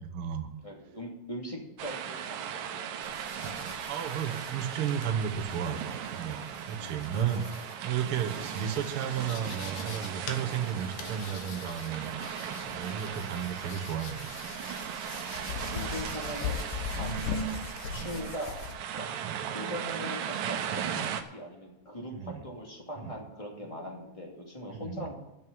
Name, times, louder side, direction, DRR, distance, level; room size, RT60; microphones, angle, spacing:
voice 1, 0.0-0.5 3.9-12.1 12.7-14.4 17.1-17.2 17.9-18.1 19.2-19.4 22.1-22.4 23.0-23.1 24.7-25.1, right 8 dB, 65° right, 4 dB, 1.4 m, -33 dB
voice 2, 0.6-2.6 2.9-3.5 5.2-5.4 6.8-7.0 12.5-12.9 15.4-17.2 17.9-18.7 19.0-19.1 19.5-25.1, equal, 10° left, -1 dB, 1.9 m, -41 dB
sound 1, 1.8-21.2, right 9 dB, 80° right, 2.6 m, -38 dB
sound 2, 3.0-18.7, left 5 dB, 85° left, 3.0 m, -41 dB
10.5 x 6.6 x 9.2 m, 0.97 s
omnidirectional pair, 4.0 m